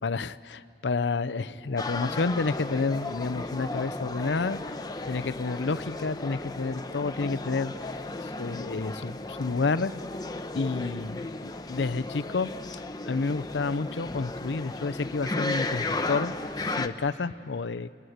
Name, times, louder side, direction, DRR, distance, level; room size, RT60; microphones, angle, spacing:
voice 1, 0.0-4.6 5.1-7.7 8.4-9.9 10.5-17.9, left 4 dB, 85° left, 15 dB, 0.6 m, -30 dB
sound 1, 1.8-16.9, left 2 dB, 25° left, 0.9 m, -35 dB
29.5 x 23.0 x 8.0 m, 2.3 s
head